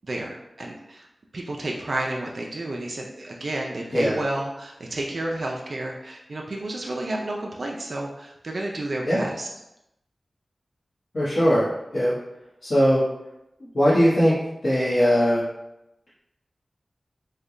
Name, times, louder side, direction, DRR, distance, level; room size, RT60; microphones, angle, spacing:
voice 1, 0.1-1.1 1.3-9.5, right 1 dB, 65° right, -1 dB, 0.4 m, -31 dB
voice 2, 11.1-11.7 11.9-12.1 12.6-13.0 13.7-14.3 14.6-15.4, equal, 70° left, -11 dB, 0.9 m, -19 dB
3.1 x 2.2 x 3.7 m, 0.88 s
wide cardioid pair, 60°, 0 cm